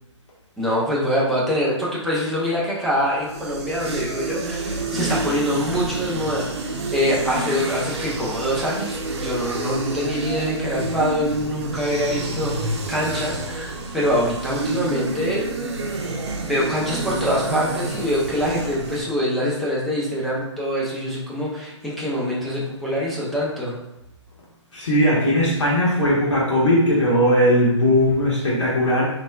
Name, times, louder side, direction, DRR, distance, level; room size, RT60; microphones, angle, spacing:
voice 1, 0.6-15.5 16.4-23.7, equal, ahead, -6 dB, 0.4 m, -24 dB
sound 1, 3.1-19.0, right 2 dB, 60° right, 0.7 m, -29 dB
voice 2, 24.7-29.0, equal, 70° left, -6 dB, 1.3 m, -18 dB
4.2 x 3.2 x 2.2 m, 0.94 s
hypercardioid pair, 155°, 16 cm